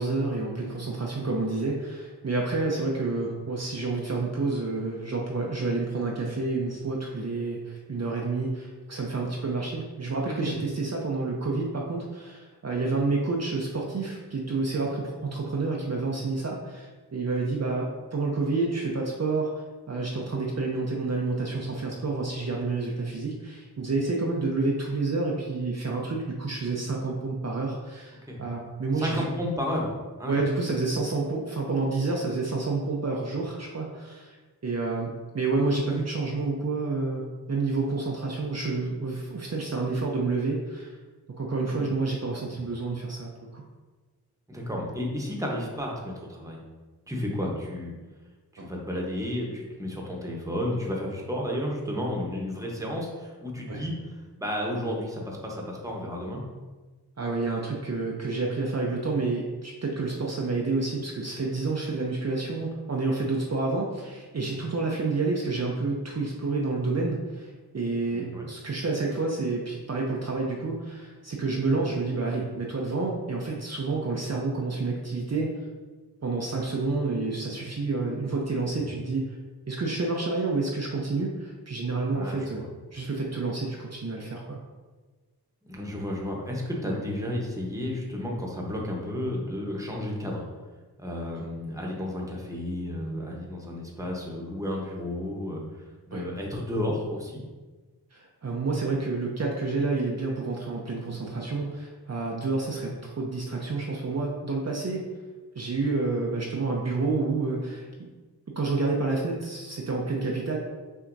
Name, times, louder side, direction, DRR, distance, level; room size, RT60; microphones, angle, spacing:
voice 1, 0.0-29.3 30.3-34.4 34.6-35.1 35.3-41.0 41.4-43.6 48.6-48.7 53.7-53.8 57.2-75.6 76.2-79.4 79.7-84.6 86.9-87.0 91.4-91.5 96.1-96.2 98.1-105.0 105.6-107.9 108.5-110.6, right 3 dB, 40° right, -2 dB, 0.7 m, -29 dB
voice 2, 28.9-29.9 30.2-30.4 41.6-42.0 44.5-46.6 47.1-47.9 48.5-53.9 54.4-56.4 68.1-68.5 78.9-79.0 82.1-82.7 85.6-90.4 91.0-97.4, left 1 dB, 10° right, -2 dB, 1.0 m, -32 dB
5.8 x 2.8 x 2.6 m, 1.3 s
cardioid pair, 55°, 39 cm